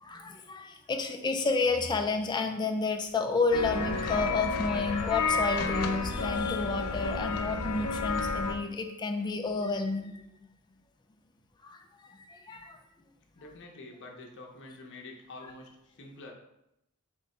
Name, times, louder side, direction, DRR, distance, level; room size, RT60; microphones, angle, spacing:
voice 1, 0.0-10.1 11.6-12.8, left 3 dB, 20° left, 5 dB, 0.3 m, -30 dB
sound 1, 3.5-8.6, left 4 dB, 90° left, 0.5 m, -31 dB
voice 2, 13.3-16.3, left 2 dB, 55° left, 1 dB, 0.7 m, -47 dB
3.7 x 3.3 x 4.1 m, 0.83 s
head